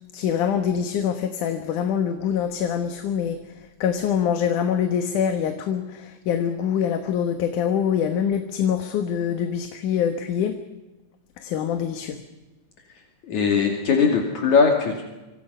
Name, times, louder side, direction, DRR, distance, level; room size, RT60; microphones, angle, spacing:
voice 1, 0.1-10.6 11.4-12.2, left 8 dB, 85° left, 7 dB, 2.8 m, -25 dB
voice 2, 13.3-15.0, left 5 dB, 70° left, 2 dB, 3.8 m, -20 dB
26.5 x 26.0 x 5.6 m, 1.1 s
omnidirectional pair, 3.5 m